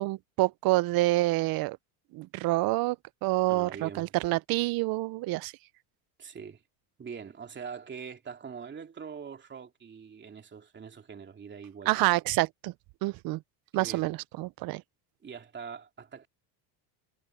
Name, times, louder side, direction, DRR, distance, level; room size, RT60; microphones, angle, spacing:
voice 1, 0.0-1.8 2.1-3.0 3.2-5.5 11.9-12.7 13.0-13.4 13.7-14.8, right 19 dB, 50° right, 0.6 m, -27 dB
voice 2, 3.5-4.1 6.2-6.6 7.0-12.1 13.7-14.1 15.2-16.3, right 6 dB, 20° right, 3.0 m, -43 dB
cardioid pair, 135°, 49 cm